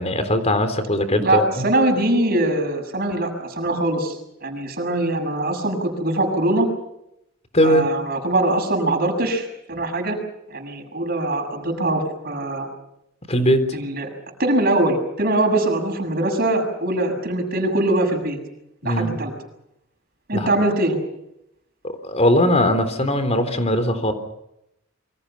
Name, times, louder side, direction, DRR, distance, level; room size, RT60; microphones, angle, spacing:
voice 1, 0.0-1.6 7.5-7.9 13.3-13.6 18.8-19.2 20.3-20.5 21.8-24.1, left 1 dB, 30° left, 9 dB, 3.7 m, -20 dB
voice 2, 1.2-6.7 7.6-10.2 10.5-12.7 13.7-14.1 14.4-18.4 18.8-19.3 20.3-21.0, right 1 dB, 45° right, 4 dB, 7.1 m, -22 dB
28.0 x 24.5 x 5.7 m, 0.82 s
head